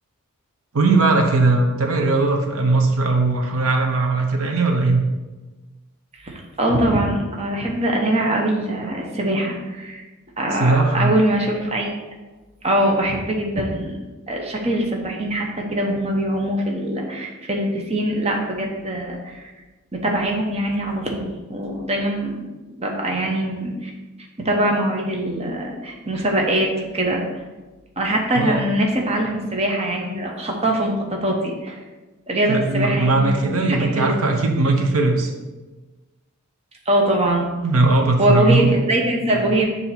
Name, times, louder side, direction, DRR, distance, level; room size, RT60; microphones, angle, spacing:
voice 1, 0.7-5.0 10.6-11.2 28.3-28.6 32.5-35.3 37.6-38.7, right 3 dB, 75° right, 3 dB, 0.8 m, -19 dB
voice 2, 6.2-10.0 10.4-11.9 12.6-14.0 14.3-19.5 19.9-22.5 22.8-23.9 24.4-27.2 28.0-31.8 32.3-34.2 36.9-37.5 38.2-39.7, right 1 dB, 30° right, 0 dB, 0.8 m, -22 dB
6.9 x 2.8 x 5.7 m, 1.2 s
head